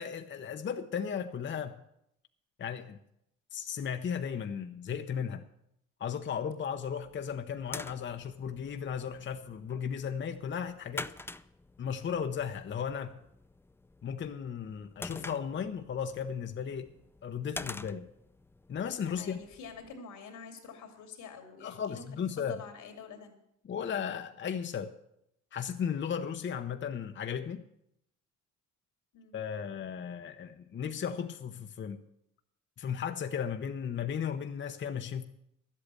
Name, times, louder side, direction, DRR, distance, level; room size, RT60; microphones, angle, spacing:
voice 1, 0.0-1.8 2.6-3.0 3.5-5.5 6.0-11.1 11.8-13.2 14.0-16.9 17.2-18.1 18.7-19.4 21.6-22.6 23.6-25.0 25.5-27.6 29.3-32.0 32.8-35.2, left 7 dB, 40° left, 0.7 m, -35 dB
sound 1, 6.9-20.0, left 2 dB, 10° left, 0.4 m, -47 dB
voice 2, 19.2-23.4 29.1-29.3, left 5 dB, 85° left, 2.7 m, -47 dB
11.5 x 8.3 x 8.2 m
cardioid pair, 90°, 30 cm